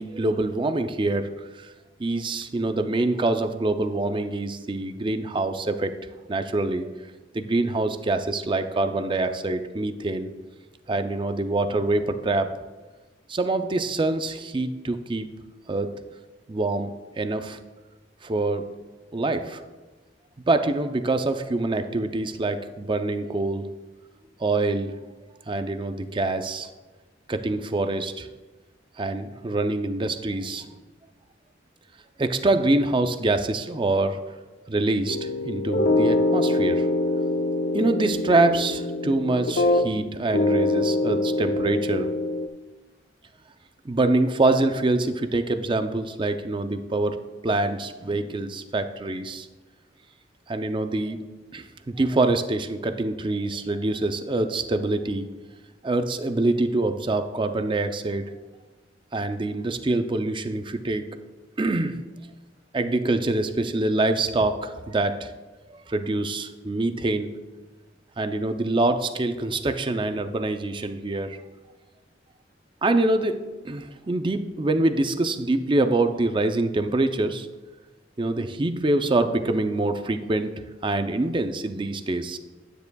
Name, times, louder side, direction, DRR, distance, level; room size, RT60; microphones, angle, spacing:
voice 1, 0.0-1.7 2.0-5.9 6.3-6.9 7.3-10.3 10.9-12.6 13.3-15.3 15.7-16.0 16.5-17.6 18.2-18.7 19.1-19.6 20.5-23.7 24.4-25.0 25.5-26.7 27.3-28.3 29.0-30.7 32.2-34.2 34.7-36.9 37.7-42.1 43.8-49.5 50.5-51.3 51.5-55.3 55.8-58.2 59.1-61.2 61.6-62.3 62.7-65.3 65.9-67.4 68.2-71.4 72.8-77.6 78.2-82.4, right 2 dB, 25° right, 9 dB, 0.5 m, -25 dB
sound 1, 35.1-40.0 40.3-42.5, left 2 dB, 60° left, 0.5 m, -24 dB
10.0 x 9.5 x 2.3 m, 1.2 s
head